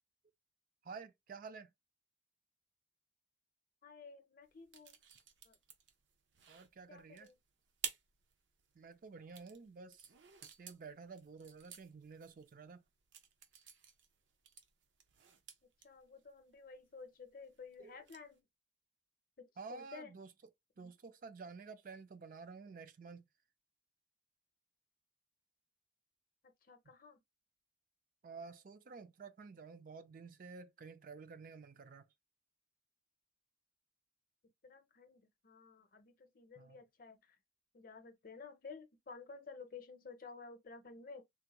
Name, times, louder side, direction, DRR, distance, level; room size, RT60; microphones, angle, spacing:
voice 1, 0.8-1.7 6.5-7.3 8.7-10.1 10.4-12.8 17.8-18.0 19.6-20.3 20.8-23.3 28.2-32.1 36.6-36.8, right 4 dB, 45° right, 0.3 m, -51 dB
voice 2, 3.8-5.0 5.5-5.6 6.9-7.4 15.8-18.4 19.4-20.1 20.8-20.9 26.7-27.2 34.6-37.4 37.7-41.2, left 4 dB, 50° left, 0.6 m, -53 dB
sound 1, 4.4-18.4, right 8 dB, 80° right, 0.6 m, -53 dB
3.5 x 2.1 x 2.9 m
head